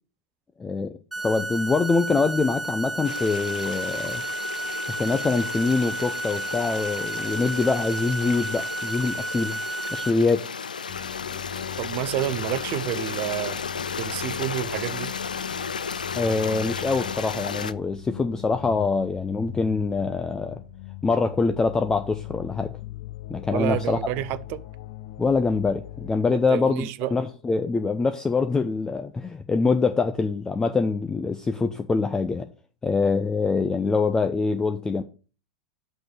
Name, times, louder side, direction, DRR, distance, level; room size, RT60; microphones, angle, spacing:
voice 1, 0.6-4.2 4.9-9.6 9.9-10.5 16.2-20.6 21.0-22.7 23.3-24.0 25.2-32.5 32.8-35.0, left 4 dB, 15° left, 0.6 m, -24 dB
sound 1, 1.1-10.1, right 2 dB, ahead, 1.1 m, -32 dB
Stream, 3.0-17.7, left 6 dB, 85° left, 0.4 m, -34 dB
sound 2, 10.9-26.1, left 13 dB, 55° left, 0.8 m, -40 dB
voice 2, 11.8-13.6 14.0-15.1 23.5-24.6 26.3-27.1, right 15 dB, 45° right, 0.6 m, -29 dB
6.1 x 5.0 x 6.1 m
figure-of-eight pair, 95°, 4 cm